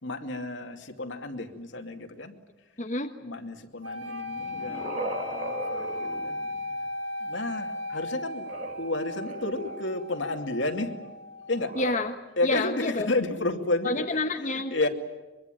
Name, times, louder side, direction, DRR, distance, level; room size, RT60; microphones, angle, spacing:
voice 1, 0.0-2.4 3.2-6.4 7.2-8.5 8.8-10.9 11.5-11.8 12.4-14.2 14.5-14.9, left 2 dB, 75° left, 5 dB, 2.5 m, -31 dB
voice 2, 2.8-3.1 11.7-12.1 12.4-13.1 13.8-14.7, left 2 dB, 40° left, 4 dB, 1.4 m, -28 dB
sound 1, 3.8-11.9, left 2 dB, 75° right, 4.1 m, -36 dB
sound 2, 4.3-6.9 8.4-10.1 11.5-12.0, right 2 dB, 40° right, 2.0 m, -38 dB
23.5 x 23.5 x 9.2 m, 1.2 s
head